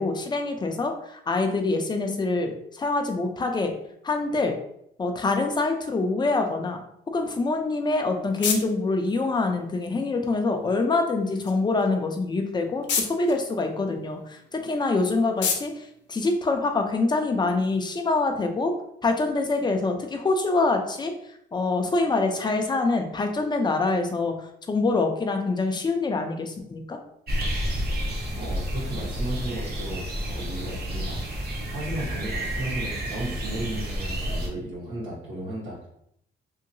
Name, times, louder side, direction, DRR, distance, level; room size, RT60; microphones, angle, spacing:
voice 1, 0.0-3.7 4.0-4.6 5.0-6.8 7.1-18.7 19.0-21.1 21.5-24.3 24.7-27.0, left 3 dB, 20° left, 4 dB, 0.5 m, -25 dB
sound 1, 7.6-17.0, left 6 dB, 65° left, 0.6 m, -35 dB
sound 2, 27.3-34.5, equal, 50° right, 0.9 m, -30 dB
voice 2, 28.3-31.2 31.7-35.9, right 1 dB, 85° right, -7 dB, 1.4 m, -34 dB
2.8 x 2.8 x 2.7 m, 0.73 s
cardioid pair, 90°, 20 cm